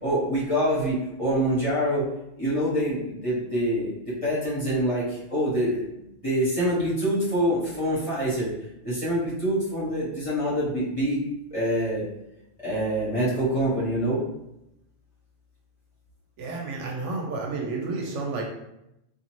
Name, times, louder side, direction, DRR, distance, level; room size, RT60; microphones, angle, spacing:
voice 1, 0.0-2.1 2.4-5.8 6.2-8.5 8.8-11.2 11.5-12.1 12.6-14.2, equal, 30° left, -9 dB, 0.9 m, -25 dB
voice 2, 16.4-18.4, right 3 dB, 70° right, 0 dB, 0.9 m, -31 dB
2.6 x 2.4 x 3.0 m, 0.86 s
omnidirectional pair, 1.3 m